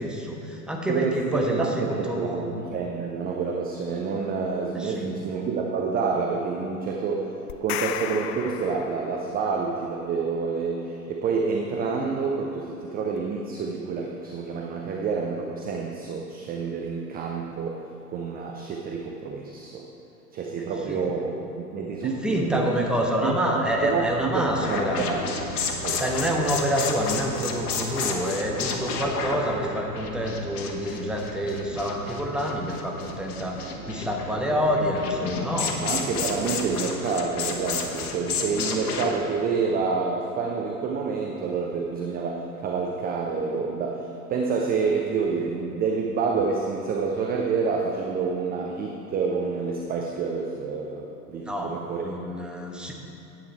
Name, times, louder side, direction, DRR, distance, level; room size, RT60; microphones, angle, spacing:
voice 1, 0.0-2.4 4.7-5.1 20.6-21.0 22.2-25.0 25.9-35.8 51.4-52.9, equal, ahead, 0 dB, 1.1 m, -27 dB
voice 2, 0.9-7.3 7.6-17.8 18.1-19.9 20.3-22.9 23.2-25.3 25.8-26.2 35.8-52.1, right 5 dB, 20° right, 1 dB, 0.6 m, -28 dB
sound 1, 7.5-9.5, left 11 dB, 45° left, 0.4 m, -33 dB
sound 2, 23.6-36.5, right 6 dB, 70° right, 0.9 m, -42 dB
sound 3, 24.5-39.2, left 5 dB, 65° left, 1.3 m, -32 dB
10.0 x 8.8 x 4.3 m, 2.9 s
figure-of-eight pair, 90°, 47 cm